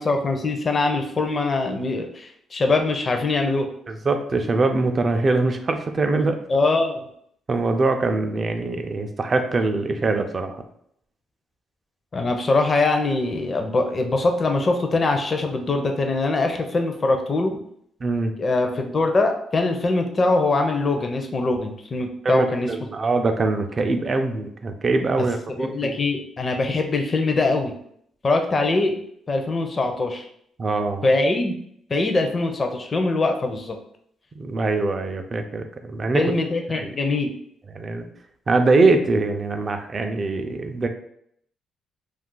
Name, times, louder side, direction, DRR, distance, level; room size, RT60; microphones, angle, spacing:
voice 1, 0.0-3.7 6.5-7.0 12.1-17.6 18.4-22.7 25.2-25.3 25.6-27.7 28.2-29.0 29.3-30.3 31.0-31.6 31.9-33.8 36.1-37.3, left 3 dB, 35° left, 4 dB, 0.4 m, -22 dB
voice 2, 3.9-6.4 7.5-10.6 18.0-18.3 22.2-25.9 30.6-31.1 34.4-36.2 36.7-36.9 37.7-38.0 38.5-40.9, right 3 dB, 35° right, 5 dB, 0.4 m, -23 dB
2.4 x 2.3 x 3.7 m, 0.69 s
cardioid pair, 90°, 0 cm